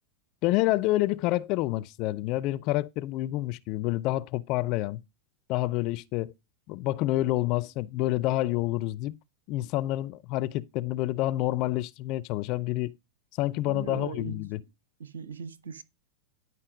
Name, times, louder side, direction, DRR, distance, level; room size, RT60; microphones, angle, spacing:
voice 1, 0.4-5.0 5.5-6.3 6.7-9.1 9.5-12.9 13.4-14.6, left 17 dB, 40° left, 0.5 m, -28 dB
voice 2, 13.6-14.4 15.0-15.8, right 6 dB, 70° right, 0.9 m, -39 dB
11.0 x 5.5 x 5.0 m
figure-of-eight pair, 90°, 0 cm